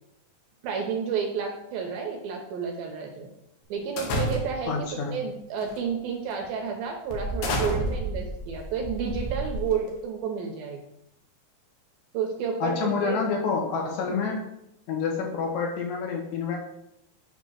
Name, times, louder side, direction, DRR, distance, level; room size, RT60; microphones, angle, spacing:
voice 1, 0.6-3.3 3.7-10.8 12.1-13.2 14.1-14.2, right 6 dB, 75° right, 2 dB, 2.3 m, -31 dB
sound 1, 4.0-4.8 5.6-5.9 6.3-6.4 7.1-10.0, equal, 70° left, 2.7 m, -30 dB
voice 2, 4.7-5.1 12.6-14.5 14.9-16.6, left 5 dB, 90° left, 1 dB, 3.4 m, -28 dB
7.9 x 2.9 x 6.1 m, 0.80 s
omnidirectional pair, 4.8 m